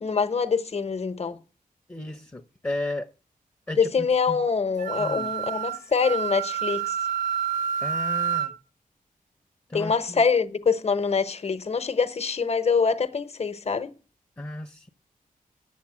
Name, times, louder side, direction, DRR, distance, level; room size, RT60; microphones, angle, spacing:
voice 1, 0.0-1.4 3.8-7.0 9.7-13.9, left 5 dB, 45° left, 1.0 m, -25 dB
voice 2, 1.9-3.1 3.7-4.4 5.0-5.4 7.8-8.6 9.7-10.2 14.4-14.9, left 1 dB, 15° left, 0.7 m, -34 dB
Wind instrument woodwind instrument, 4.8-8.5, right 8 dB, 70° right, 1.1 m, -28 dB
8.7 x 7.2 x 8.7 m
wide cardioid pair, 95°, 15 cm